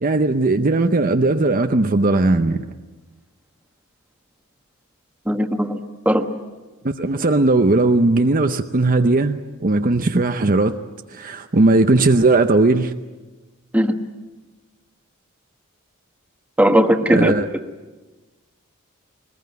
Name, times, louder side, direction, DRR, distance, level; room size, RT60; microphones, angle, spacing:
voice 1, 0.0-2.6 7.0-10.8 11.1-12.9 17.1-17.4, right 2 dB, 40° right, 0.7 m, -17 dB
voice 2, 5.2-5.8 6.0-6.3 13.7-13.9 16.6-17.3, equal, 5° right, 1.3 m, -17 dB
22.5 x 20.5 x 9.4 m
head